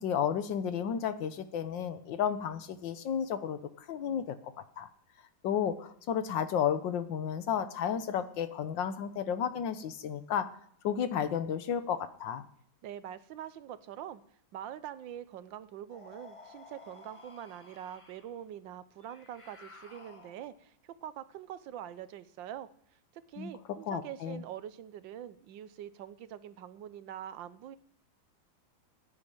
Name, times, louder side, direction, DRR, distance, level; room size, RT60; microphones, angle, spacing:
voice 1, 0.0-4.9 5.4-10.5 10.8-12.4 23.4-23.5 23.9-24.4, left 8 dB, 75° left, 11 dB, 1.6 m, -32 dB
voice 2, 12.8-14.2 14.5-22.7 23.1-27.8, right 10 dB, 75° right, 14 dB, 1.4 m, -44 dB
sound 1, 15.9-18.4 19.0-20.7, left 3 dB, 20° left, 1.0 m, -54 dB
10.0 x 9.6 x 9.0 m, 0.68 s
omnidirectional pair, 2.1 m